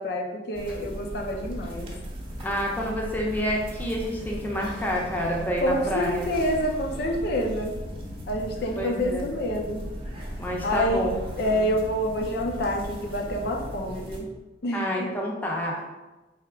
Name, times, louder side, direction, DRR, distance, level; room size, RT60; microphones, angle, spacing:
voice 1, 0.0-1.9 5.6-7.7 8.3-9.8 10.6-11.1 11.4-14.3 14.6-15.1, equal, 60° left, 1 dB, 0.5 m, -27 dB
sound 1, 0.5-14.2, equal, 30° right, 0.8 m, -37 dB
voice 2, 2.4-6.3 8.8-9.3 10.4-11.7 14.7-15.8, equal, 10° left, -2 dB, 0.6 m, -29 dB
3.5 x 2.8 x 4.5 m, 1.1 s
head